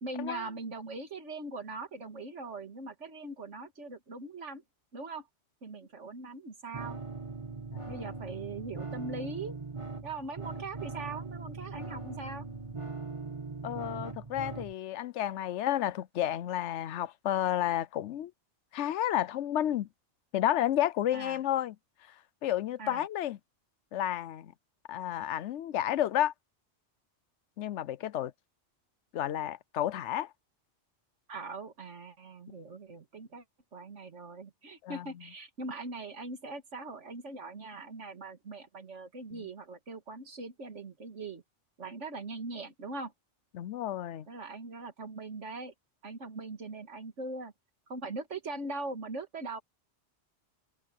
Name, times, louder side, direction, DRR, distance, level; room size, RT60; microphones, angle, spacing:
voice 1, 0.0-4.6 4.9-5.3 5.6-7.0 7.9-9.6 10.0-12.5 21.1-21.4 22.8-23.1 31.3-33.4 33.7-41.4 41.8-43.1 44.3-45.7 46.0-47.5 47.9-49.6, right 3 dB, 85° right, 2.4 m, -41 dB
sound 1, 6.7-14.7, right 4 dB, 25° right, 2.0 m, -40 dB
voice 2, 13.6-18.3 18.7-19.9 20.3-21.8 22.1-22.2 22.4-23.4 23.9-24.5 24.9-26.3 27.6-28.3 29.1-30.3 34.8-35.1 39.3-39.5 43.5-44.3, left 12 dB, 80° left, 0.9 m, -31 dB
omnidirectional pair, 1.2 m